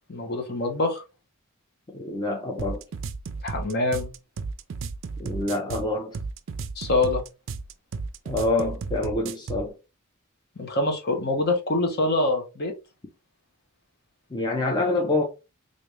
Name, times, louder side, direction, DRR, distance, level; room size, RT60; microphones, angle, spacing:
voice 1, 0.1-1.0 3.4-4.1 6.8-7.2 10.6-12.7, left 2 dB, 50° left, 0.9 m, -25 dB
voice 2, 1.9-2.8 5.2-6.2 8.2-9.8 14.3-15.2, left 2 dB, 20° left, 0.6 m, -26 dB
sound 1, 2.6-9.7, right 4 dB, 60° right, 0.4 m, -33 dB
3.3 x 2.6 x 3.2 m
head